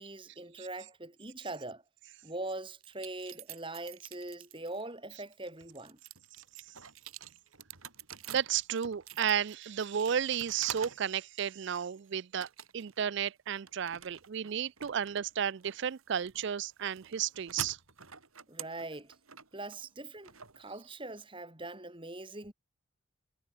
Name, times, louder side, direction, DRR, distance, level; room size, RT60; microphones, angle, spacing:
voice 1, 0.0-1.8 2.2-6.0 18.5-19.2 19.5-22.5, right 2 dB, 25° right, 3.5 m, -42 dB
sound 1, 2.8-4.8 5.3-11.1 11.4-12.0 12.4-13.0 13.3-21.2, right 9 dB, 85° right, 5.6 m, -47 dB
voice 2, 8.3-12.5 12.7-17.8, right 8 dB, 55° right, 0.4 m, -33 dB
head